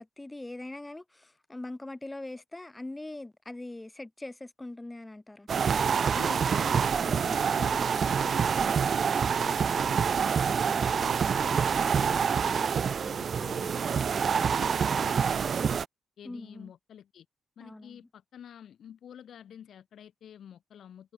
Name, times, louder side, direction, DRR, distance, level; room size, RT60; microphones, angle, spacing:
voice 1, 0.0-5.5 16.2-16.7 17.6-18.0, left 2 dB, 10° left, 2.2 m, -42 dB
sound 1, 5.5-15.9, right 6 dB, 45° right, 0.5 m, -26 dB
voice 2, 6.1-15.8 16.2-17.3 17.6-21.1, left 9 dB, 65° left, 6.4 m, -49 dB
wide cardioid pair, 165°, 0 cm